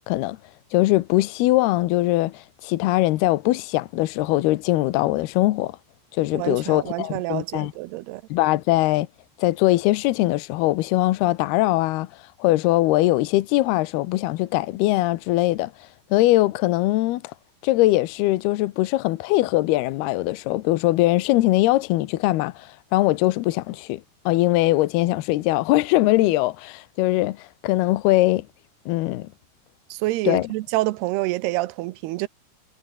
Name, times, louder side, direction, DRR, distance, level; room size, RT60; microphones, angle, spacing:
voice 1, 0.1-0.4 0.7-5.8 6.1-7.7 8.3-9.1 9.4-12.1 12.4-15.7 16.1-17.2 17.6-28.5 28.9-29.3 30.3-30.5, left 17 dB, 75° left, 2.6 m, -21 dB
voice 2, 6.3-8.2 29.9-32.3, right 18 dB, 80° right, 2.5 m, -27 dB
omnidirectional pair, 5.2 m